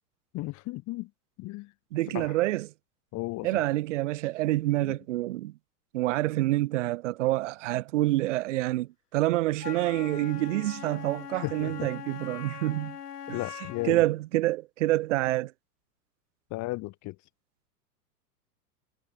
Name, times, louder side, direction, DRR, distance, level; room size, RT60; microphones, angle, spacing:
voice 1, 0.3-1.1 1.4-1.7 2.1-2.4 3.1-3.6 4.8-5.0 11.3-11.9 13.3-14.0 16.5-17.2, left 20 dB, 35° left, 3.1 m, -35 dB
voice 2, 1.9-2.7 3.4-5.5 5.9-13.0 13.3-13.4 13.9-15.5, right 17 dB, 50° right, 0.6 m, -27 dB
Wind instrument woodwind instrument, 9.6-14.1, left 9 dB, 75° left, 1.2 m, -41 dB
figure-of-eight pair, 100°, 47 cm